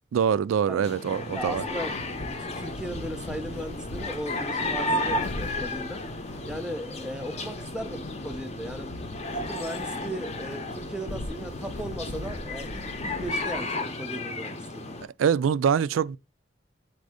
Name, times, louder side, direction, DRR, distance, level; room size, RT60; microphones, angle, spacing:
voice 1, 0.1-1.6 15.2-16.2, right 7 dB, 90° right, 0.3 m, -24 dB
sound 1, 0.8-15.1, left 1 dB, 35° left, 0.7 m, -33 dB
sound 2, 1.2-14.0, left 1 dB, 70° left, 0.7 m, -41 dB
voice 2, 1.3-6.0 6.5-9.0 9.3-14.8, equal, 5° right, 0.4 m, -37 dB
4.2 x 2.6 x 4.8 m
head